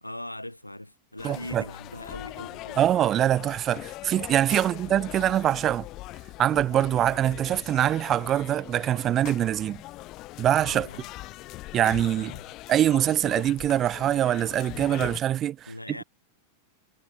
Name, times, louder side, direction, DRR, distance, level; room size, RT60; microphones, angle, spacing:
voice 1, 0.0-2.9 4.6-5.0 10.7-11.1 12.1-12.5 15.7-16.0, left 1 dB, 85° left, 0.9 m, -41 dB
sound 1, 1.2-15.2, left 18 dB, 40° left, 0.4 m, -41 dB
voice 2, 1.2-1.6 2.8-5.9 6.4-9.8 10.4-10.9 11.7-12.3 12.7-16.0, right 11 dB, 30° right, 0.5 m, -24 dB
figure-of-eight pair, 90°, 0 cm